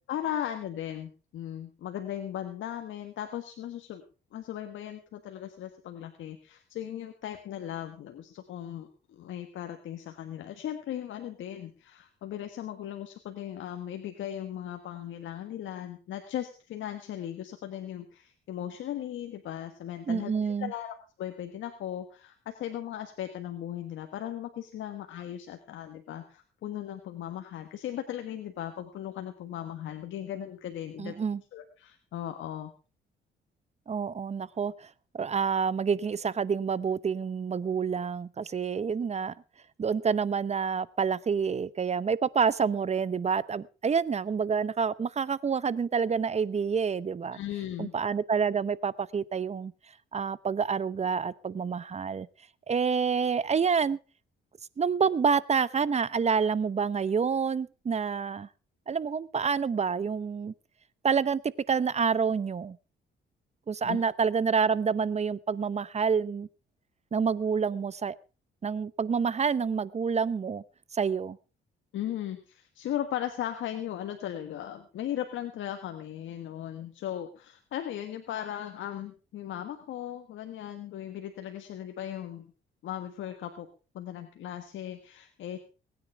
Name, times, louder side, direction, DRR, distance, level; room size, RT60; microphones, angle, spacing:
voice 1, 0.1-4.0 4.3-20.3 20.6-31.1 31.5-32.7 47.3-47.9 63.8-64.0 71.9-82.5 82.8-83.7 83.9-85.6, left 11 dB, 75° left, 1.6 m, -37 dB
voice 2, 20.1-20.7 31.0-31.4 33.9-34.9 35.1-39.3 39.8-47.4 47.8-49.7 50.1-52.3 52.7-54.0 54.8-58.5 58.9-60.5 61.0-61.4 61.7-62.8 63.7-66.5 67.1-68.2 68.6-70.6 70.9-71.4, right 6 dB, 35° right, 0.8 m, -28 dB
20.5 x 9.7 x 4.7 m
cardioid pair, 90°, 20 cm